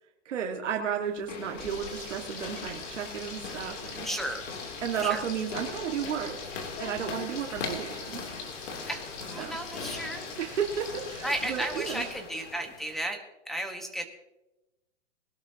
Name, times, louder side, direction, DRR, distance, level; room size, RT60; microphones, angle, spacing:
voice 1, 0.3-4.1 4.8-6.4 6.8-8.2 9.4-9.6 10.4-12.1, right 8 dB, 75° right, 2 dB, 2.0 m, -33 dB
sound 1, 1.1-13.0, left 4 dB, 75° left, 3.1 m, -41 dB
Frying (food), 1.6-12.1, left 4 dB, 40° left, 3.8 m, -42 dB
voice 2, 4.0-4.4 5.0-5.2 8.9-9.0 9.3-10.2 11.2-14.0, right 1 dB, ahead, 5 dB, 1.3 m, -34 dB
22.0 x 12.0 x 2.9 m, 0.98 s
hypercardioid pair, 145°, 36 cm